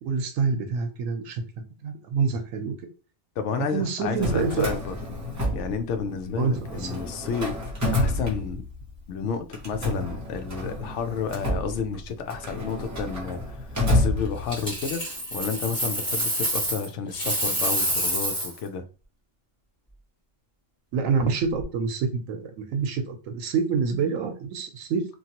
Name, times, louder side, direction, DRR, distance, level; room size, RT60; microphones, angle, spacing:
voice 1, 0.0-1.4 1.8-2.7 3.6-4.7 6.4-7.0 20.9-25.0, right 5 dB, 85° right, 1.0 m, -27 dB
voice 2, 3.4-4.9 5.5-7.6 7.9-8.6 9.1-18.8, left 6 dB, 70° left, 0.9 m, -31 dB
Drawer open or close, 4.0-6.2 6.5-8.9 9.5-14.8, left 1 dB, 15° right, 0.7 m, -29 dB
Coin (dropping), 14.5-16.9 17.1-18.6 21.4-21.6, right 1 dB, 5° left, 1.5 m, -27 dB
3.0 x 2.5 x 2.8 m
omnidirectional pair, 1.3 m